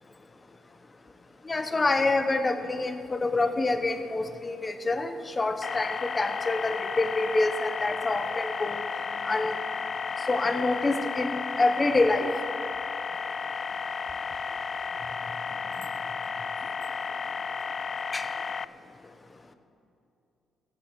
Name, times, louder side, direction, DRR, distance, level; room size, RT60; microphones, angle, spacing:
voice 1, 1.5-8.8 9.2-9.5 10.3-12.3 18.1-18.2, left 2 dB, 25° left, 8 dB, 1.1 m, -27 dB
sound 1, 5.6-18.7, left 5 dB, 40° left, 0.3 m, -33 dB
15.5 x 8.8 x 6.9 m, 2.6 s
cardioid pair, 90°, 0 cm